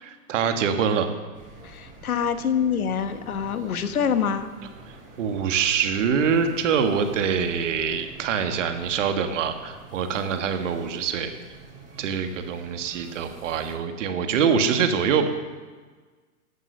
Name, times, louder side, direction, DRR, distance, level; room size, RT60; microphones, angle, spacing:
voice 1, 0.0-1.1 5.2-11.3 12.0-15.3, right 6 dB, 55° right, 7 dB, 1.7 m, -24 dB
sound 1, 1.3-13.7, right 3 dB, 15° right, 4.3 m, -47 dB
voice 2, 1.6-4.5, left 7 dB, 70° left, 10 dB, 1.4 m, -25 dB
14.5 x 8.7 x 6.7 m, 1.4 s
hypercardioid pair, 115°, 45 cm